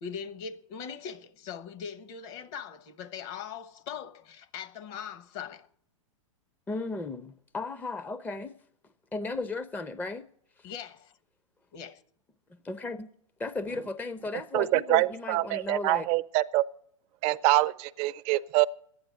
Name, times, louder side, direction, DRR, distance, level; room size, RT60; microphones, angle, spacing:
voice 1, 0.0-5.7 10.6-11.2 11.7-12.0, left 7 dB, 45° left, 1.1 m, -40 dB
voice 2, 6.7-8.5 9.1-10.3 10.6-10.7 12.6-13.1 13.4-16.1, left 3 dB, 10° left, 0.5 m, -35 dB
voice 3, 14.5-16.6 17.2-18.7, right 17 dB, 40° right, 0.5 m, -25 dB
11.5 x 9.1 x 9.3 m
hypercardioid pair, 105°, 17 cm